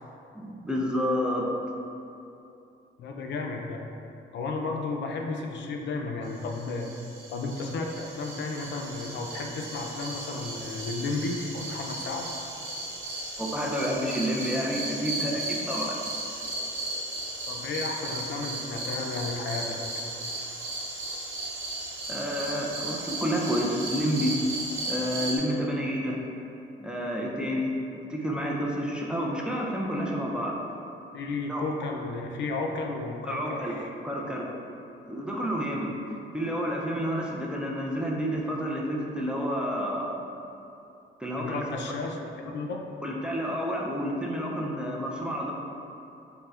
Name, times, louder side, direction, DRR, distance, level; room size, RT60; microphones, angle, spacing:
voice 1, 0.3-1.5 13.4-16.0 22.1-24.4 24.9-26.2 26.8-27.8 28.1-30.6 31.5-31.6 33.3-33.8 34.0-34.5 35.0-36.0 36.3-40.1 41.2-41.6 43.0-45.5, equal, 5° right, -3 dB, 0.4 m, -29 dB
voice 2, 3.0-3.8 4.3-6.9 7.3-12.4 17.5-19.8 31.1-33.9 41.4-42.8, left 3 dB, 65° left, 1 dB, 0.4 m, -33 dB
sound 1, 6.5-25.4, right 2 dB, 80° right, 0.8 m, -35 dB
5.4 x 2.1 x 2.4 m, 2.8 s
cardioid pair, 90°, 20 cm